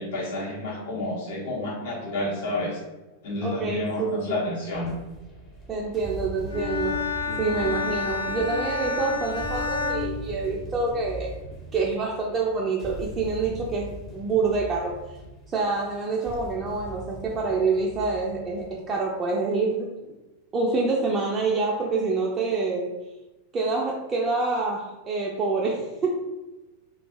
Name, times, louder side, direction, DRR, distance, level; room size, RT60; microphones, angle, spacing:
voice 1, 0.0-2.8 3.2-4.9 7.3-7.7, left 2 dB, 55° left, -3 dB, 0.9 m, -30 dB
voice 2, 3.4-4.4 5.7-7.0 7.4-11.4 11.7-15.0 15.5-20.2 20.5-23.0 23.5-26.3, right 3 dB, 25° right, -2 dB, 0.4 m, -27 dB
sound 1, 4.7-19.0, right 1 dB, 25° left, 0.8 m, -40 dB
Bowed string instrument, 6.5-11.0, left 4 dB, 75° left, 0.4 m, -30 dB
2.4 x 2.2 x 2.7 m, 1.1 s
figure-of-eight pair, 90°, 0 cm